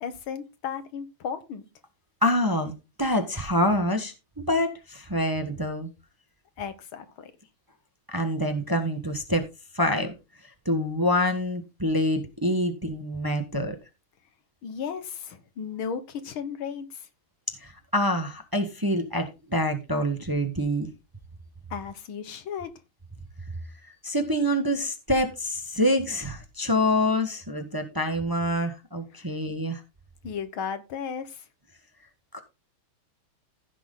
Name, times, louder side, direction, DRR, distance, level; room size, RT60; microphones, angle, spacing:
voice 1, 0.0-1.7 6.6-7.3 14.6-17.1 21.7-22.7 29.1-29.3 30.2-31.5, left 7 dB, 80° left, 2.1 m, -35 dB
voice 2, 2.2-2.7 3.0-4.1 4.5-5.9 8.1-9.4 9.7-10.1 10.6-13.7 17.6-20.9 24.0-29.8 32.3-32.4, left 1 dB, 10° right, 1.2 m, -26 dB
15.5 x 6.2 x 3.8 m
omnidirectional pair, 2.3 m